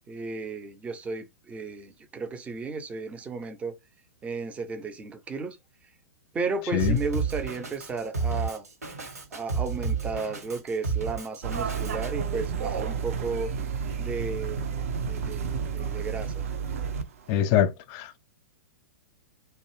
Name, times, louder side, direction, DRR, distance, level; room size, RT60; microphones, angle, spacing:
voice 1, 0.1-3.8 4.2-5.6 6.3-8.7 9.3-13.5 14.0-14.7 15.0-16.4, right 4 dB, 15° right, 0.5 m, -34 dB
Drum kit, 6.8-12.1, right 5 dB, 80° right, 1.1 m, -31 dB
sound 1, 11.4-17.0 17.3-17.4, right 6 dB, 60° right, 0.5 m, -31 dB
voice 2, 17.3-18.2, left 10 dB, 40° left, 0.5 m, -24 dB
2.6 x 2.1 x 3.1 m
figure-of-eight pair, 110°, 8 cm